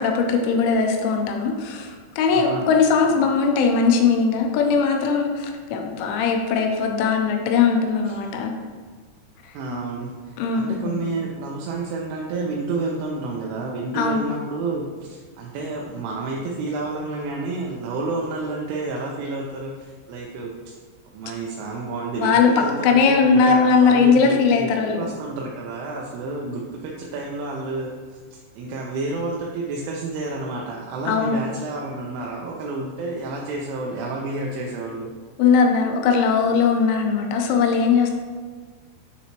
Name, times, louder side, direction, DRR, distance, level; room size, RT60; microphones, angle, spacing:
voice 1, 0.0-8.5 9.7-9.8 10.4-10.9 13.9-14.2 22.2-25.1 31.1-31.4 35.4-38.1, left 5 dB, 80° left, 3 dB, 2.9 m, -19 dB
voice 2, 2.3-2.7 3.1-3.3 8.0-8.2 9.5-20.7 21.1-24.7 25.0-35.1, right 3 dB, 80° right, -2 dB, 3.0 m, -30 dB
9.2 x 4.1 x 2.9 m, 1.5 s
omnidirectional pair, 5.8 m